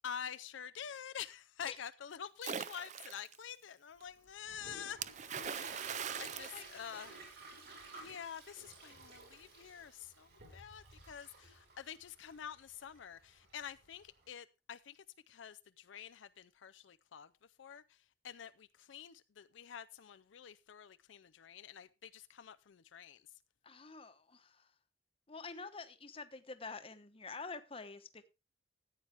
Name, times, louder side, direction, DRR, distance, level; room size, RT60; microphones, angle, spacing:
voice 1, 0.0-5.6 6.2-7.2 7.9-17.3 17.6-17.8 18.2-23.2, left 8 dB, 75° left, 0.5 m, -48 dB
Splash splatter, 2.4-3.4 5.0-7.5, right 7 dB, 40° right, 0.5 m, -42 dB
Toilet flush, 4.0-14.2, right 3 dB, 55° right, 5.8 m, -54 dB
voice 2, 6.5-7.1 23.6-24.7 25.3-28.3, left 4 dB, 30° left, 1.0 m, -48 dB
14.0 x 8.7 x 3.5 m
head